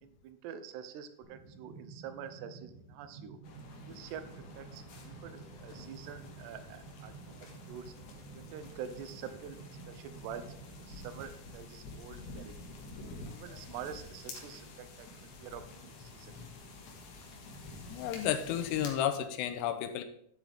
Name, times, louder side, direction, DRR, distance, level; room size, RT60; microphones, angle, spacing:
voice 1, 0.0-3.4 3.9-4.3 4.5-7.2 7.7-7.9 8.3-10.5 10.8-12.5 13.3-15.1 15.4-16.4, right 8 dB, 80° right, 10 dB, 2.9 m, -46 dB
sound 1, 1.2-11.2, right 4 dB, 50° right, 4.5 m, -52 dB
sound 2, 3.4-18.9, left 2 dB, 70° left, 3.6 m, -49 dB
voice 2, 17.9-20.0, left 10 dB, 90° left, 9 dB, 2.9 m, -32 dB
11.5 x 8.5 x 3.5 m, 0.69 s
omnidirectional pair, 4.8 m